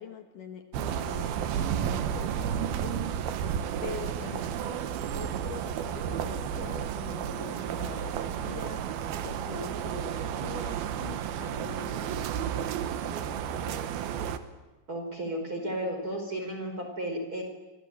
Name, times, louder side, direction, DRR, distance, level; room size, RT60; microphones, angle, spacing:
voice 1, 0.0-3.1 3.8-4.8 5.1-8.9 9.2-13.6, left 6 dB, 65° left, 6 dB, 2.8 m, -44 dB
sound 1, 0.7-14.4, right 9 dB, 80° right, 3.1 m, -32 dB
voice 2, 4.2-4.5 14.9-17.4, right 1 dB, 25° right, 5 dB, 5.0 m, -34 dB
26.0 x 25.5 x 8.9 m, 1.2 s
omnidirectional pair, 4.3 m